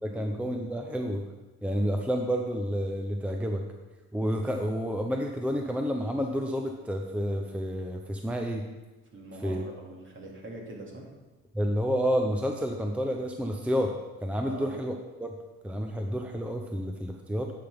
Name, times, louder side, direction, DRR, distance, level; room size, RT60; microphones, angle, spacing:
voice 1, 0.0-1.2 1.6-3.6 4.1-8.7 9.4-9.6 11.5-13.9 14.2-15.4 15.6-17.5, equal, 5° right, 3 dB, 0.6 m, -30 dB
voice 2, 9.1-11.1 14.4-14.7, right 1 dB, 40° right, -2 dB, 2.2 m, -43 dB
10.0 x 5.7 x 3.5 m, 1.2 s
cardioid pair, 90°, 30 cm